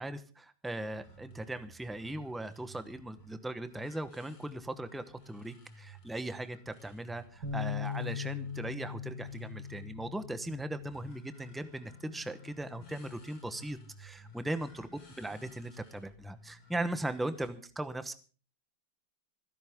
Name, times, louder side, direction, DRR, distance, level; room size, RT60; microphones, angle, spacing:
voice 1, 0.0-14.9 15.2-18.1, right 1 dB, ahead, 11 dB, 0.4 m, -39 dB
sound 1, 0.8-17.5, left 1 dB, 85° left, 3.4 m, -55 dB
Bass guitar, 7.4-13.7, left 7 dB, 80° right, 4.9 m, -41 dB
26.5 x 11.0 x 3.6 m, 0.38 s
omnidirectional pair, 2.0 m